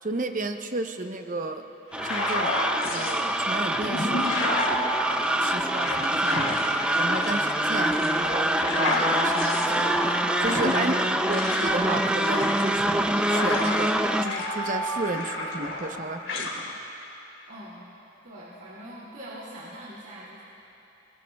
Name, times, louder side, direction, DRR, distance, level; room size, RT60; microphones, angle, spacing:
voice 1, 0.0-1.6 2.0-2.5 2.9-4.9 5.4-6.5 7.0-9.9 10.4-10.9 11.3-16.7, right 2 dB, 40° right, 5 dB, 0.8 m, -33 dB
sound 1, 1.9-3.2 3.7-13.9 14.2-16.0 16.3-16.5, left 2 dB, 85° left, 3.0 m, -31 dB
sound 2, 1.9-14.3, right 1 dB, 5° right, 0.4 m, -25 dB
Alarm, 3.4-6.7 7.9-11.7 12.9-16.1, right 1 dB, 20° left, 1.3 m, -36 dB
voice 2, 10.3-11.1 11.5-11.8 17.4-17.9 18.2-20.4, equal, 70° right, -8 dB, 2.6 m, -42 dB
29.5 x 21.0 x 2.3 m, 3.0 s
head